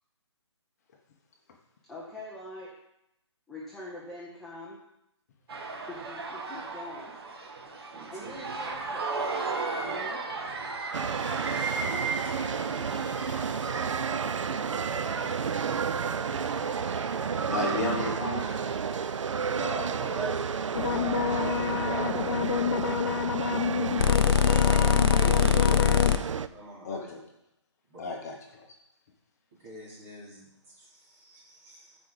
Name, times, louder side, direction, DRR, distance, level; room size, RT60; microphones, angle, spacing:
voice 1, 1.9-2.7 3.5-4.8 5.7-7.1 8.1-9.1 9.8-10.2, left 1 dB, ahead, -7 dB, 0.7 m, -43 dB
sound 1, 5.5-22.3, right 4 dB, 55° right, 1.5 m, -37 dB
voice 2, 7.9-8.5 9.9-10.3 11.6-13.7 17.1-17.8 19.5-20.3 20.8-21.6 22.3-23.1 24.5-24.9 25.6-26.1 26.5-27.2 27.9-28.1 29.6-32.0, right 3 dB, 30° right, -5 dB, 3.0 m, -43 dB
sound 2, 10.9-26.5, right 6 dB, 90° right, 0.5 m, -31 dB
voice 3, 17.5-18.4 21.1-21.2 26.8-27.2 28.0-28.6, left 4 dB, 35° left, 2 dB, 1.1 m, -33 dB
sound 3, 20.7-26.2, left 8 dB, 50° left, 0.5 m, -24 dB
14.5 x 5.0 x 4.0 m, 0.82 s
hypercardioid pair, 165°, 15 cm